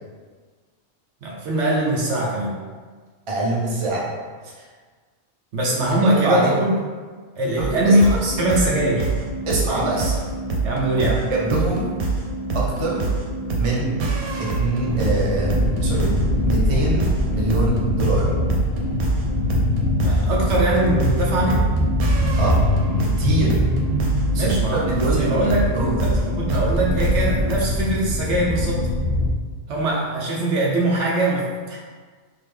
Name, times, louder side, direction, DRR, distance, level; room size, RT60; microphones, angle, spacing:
voice 1, 1.2-2.6 5.5-6.7 7.4-8.0 8.4-9.1 10.6-11.3 20.0-21.6 24.3-24.8 25.1-25.7 26.0-28.8 29.7-31.8, right 1 dB, 65° right, -3 dB, 0.8 m, -22 dB
voice 2, 3.3-4.1 4.4-4.6 6.0-6.6 7.5-8.0 8.2-8.3 9.5-10.1 11.3-11.9 12.5-13.1 13.6-14.0 14.4-16.1 16.4-18.3 22.4-22.6 22.9-23.6 24.3-26.0, right 2 dB, 35° right, -4 dB, 0.5 m, -24 dB
sound 1, 7.6-27.6, right 3 dB, 85° right, 1.1 m, -26 dB
sound 2, 14.8-29.3, left 1 dB, 70° left, 0.5 m, -23 dB
3.8 x 2.8 x 3.2 m, 1.5 s
omnidirectional pair, 1.4 m